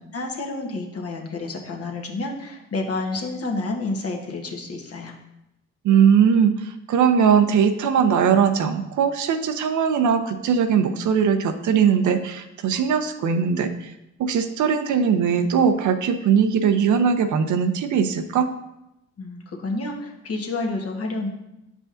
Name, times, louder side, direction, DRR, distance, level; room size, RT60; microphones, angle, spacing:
voice 1, 0.1-5.1 19.2-21.3, left 2 dB, 50° left, 1 dB, 1.2 m, -29 dB
voice 2, 5.8-13.9 14.2-18.5, right 7 dB, 75° right, 8 dB, 0.6 m, -20 dB
7.7 x 4.9 x 2.5 m, 0.89 s
supercardioid pair, 60°, 30 cm